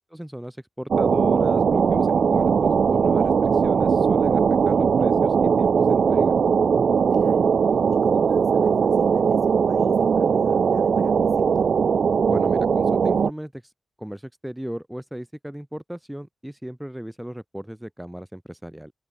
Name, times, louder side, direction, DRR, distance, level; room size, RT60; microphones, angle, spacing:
voice 1, 0.1-6.3 12.3-13.7 14.0-18.9, equal, 5° right, 0.6 m, -35 dB
sound 1, 0.9-13.3, right 6 dB, 70° right, 0.4 m, -20 dB
voice 2, 7.1-7.6 7.9-11.7, left 3 dB, 40° left, 5.3 m, -48 dB
cardioid pair, 80°, 0 cm